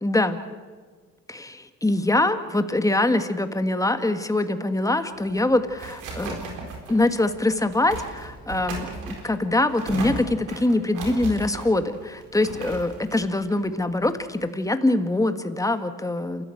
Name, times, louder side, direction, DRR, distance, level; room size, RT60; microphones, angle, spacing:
voice 1, 0.0-0.4 1.3-6.4 6.9-16.4, left 2 dB, 10° left, 9 dB, 1.8 m, -24 dB
sound 1, 5.2-14.4, right 3 dB, 90° right, 4.3 m, -37 dB
28.0 x 14.5 x 7.9 m, 1.5 s
cardioid pair, 90°, 30 cm